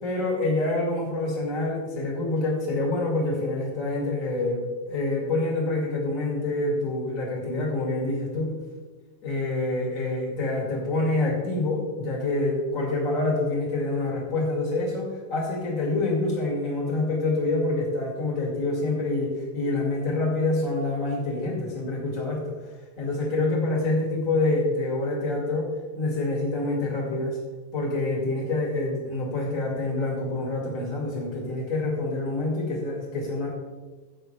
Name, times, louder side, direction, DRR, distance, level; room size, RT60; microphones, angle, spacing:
voice 1, 0.0-8.5 9.2-22.4 23.0-27.4 27.7-33.5, left 2 dB, 35° left, -2 dB, 2.7 m, -26 dB
13.5 x 8.7 x 3.3 m, 1.3 s
omnidirectional pair, 2.4 m